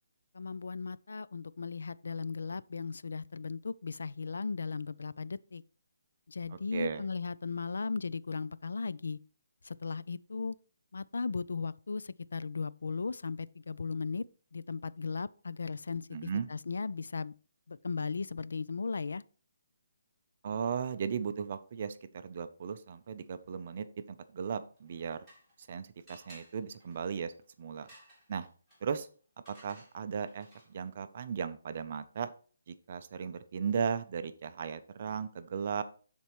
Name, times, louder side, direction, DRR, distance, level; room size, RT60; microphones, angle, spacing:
voice 1, 0.3-5.6 6.3-9.2 9.6-10.6 10.9-14.3 14.5-17.3 17.7-19.2, left 4 dB, 65° left, 0.3 m, -37 dB
voice 2, 6.7-7.0 16.1-16.5 20.4-25.2 25.7-27.3 27.6-27.9 28.3-28.5 28.8-29.1 29.5-32.3 32.7-35.8, right 6 dB, 30° right, 0.5 m, -36 dB
sound 1, 24.8-25.7 26.1-30.9, right 1 dB, 5° left, 2.6 m, -59 dB
12.5 x 4.3 x 3.0 m
hypercardioid pair, 180°, 0 cm